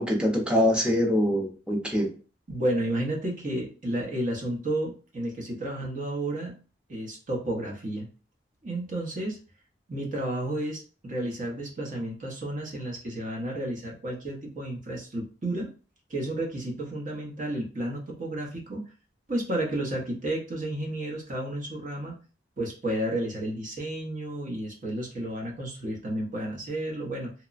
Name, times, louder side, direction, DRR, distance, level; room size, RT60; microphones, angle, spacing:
voice 1, 0.0-2.1, equal, 5° right, 0 dB, 0.6 m, -24 dB
voice 2, 2.5-6.5 6.9-8.1 8.6-9.4 9.9-15.7 16.1-18.8 19.3-22.2 22.6-27.3, right 1 dB, 45° right, -1 dB, 0.8 m, -32 dB
2.9 x 2.1 x 2.4 m, 0.36 s
head